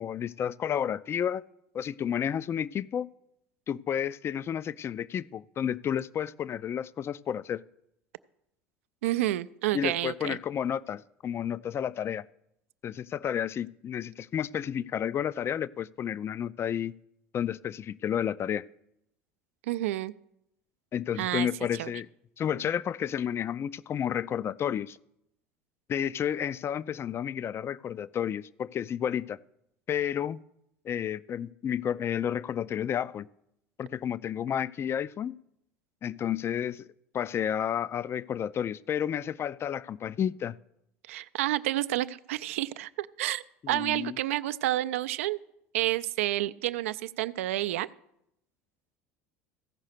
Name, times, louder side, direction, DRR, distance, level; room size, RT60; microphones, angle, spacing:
voice 1, 0.0-1.4 1.7-3.1 3.7-7.6 9.7-12.3 12.8-16.9 17.3-18.6 20.9-22.1 22.4-25.0 25.9-29.4 29.9-30.4 30.9-33.3 33.8-35.3 36.0-36.9 37.1-40.6 43.6-44.2, left 9 dB, 35° left, 0.4 m, -31 dB
voice 2, 9.0-10.4 19.7-20.1 21.2-21.5 21.7-21.9 41.1-45.4 45.7-47.9, right 15 dB, 75° right, 0.4 m, -29 dB
15.0 x 5.5 x 6.6 m
hypercardioid pair, 70°, 7 cm